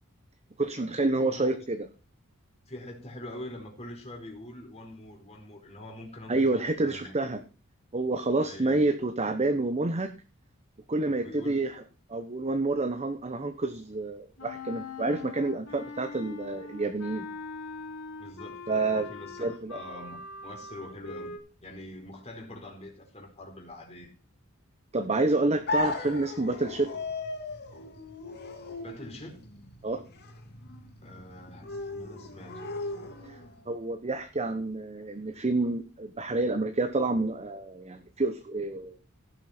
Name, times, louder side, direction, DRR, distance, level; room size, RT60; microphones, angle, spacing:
voice 1, 0.6-1.9 6.3-7.4 7.9-10.1 10.9-11.8 12.1-17.3 18.7-19.1 19.4-19.8 24.9-26.9 29.8-30.0 33.3-33.4 33.7-39.0, right 2 dB, 30° right, 1.0 m, -28 dB
voice 2, 1.2-1.6 2.7-7.1 8.4-8.8 11.0-11.6 18.2-21.4 21.6-24.1 28.8-29.4 31.0-32.7, left 1 dB, 30° left, 4.4 m, -44 dB
Wind instrument woodwind instrument, 14.4-21.4, left 4 dB, 75° left, 4.6 m, -42 dB
sound 1, 25.7-33.6, left 2 dB, 50° left, 2.6 m, -36 dB
16.5 x 7.5 x 4.4 m
head